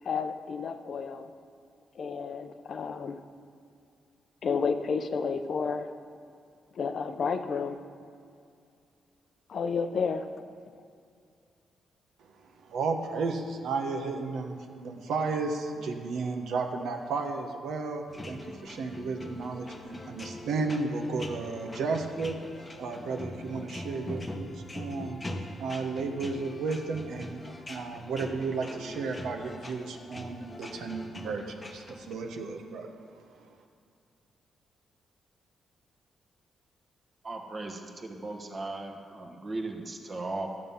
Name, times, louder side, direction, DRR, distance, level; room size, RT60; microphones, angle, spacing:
voice 1, 0.0-1.3 2.0-3.2 4.4-5.9 6.7-7.8 9.5-10.3, left 5 dB, 45° left, 8 dB, 0.6 m, -31 dB
voice 2, 12.2-22.4 22.8-25.2 25.6-33.5, right 4 dB, 75° right, 4 dB, 1.1 m, -33 dB
sound 1, 18.1-32.1, left 1 dB, 15° left, 0.9 m, -42 dB
voice 3, 37.2-40.5, right 2 dB, 30° right, 2 dB, 1.2 m, -37 dB
13.5 x 7.5 x 5.5 m, 2.3 s
wide cardioid pair, 160°, 0 cm